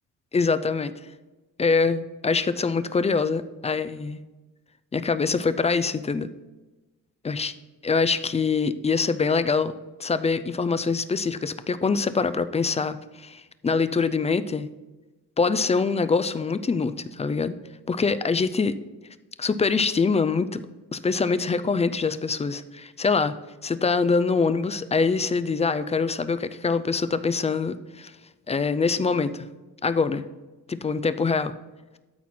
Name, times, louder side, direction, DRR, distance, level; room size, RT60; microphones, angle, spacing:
voice 1, 0.3-0.9 1.6-4.2 4.9-6.3 7.2-7.5 7.8-9.7 10.0-14.7 15.4-17.6 17.9-18.7 19.4-20.6 20.9-23.3 23.6-28.1 28.5-29.5 29.8-30.2 30.7-31.5, left 4 dB, 20° left, 13 dB, 0.4 m, -24 dB
13.0 x 4.3 x 4.3 m, 1.1 s
cardioid pair, 105°, 35 cm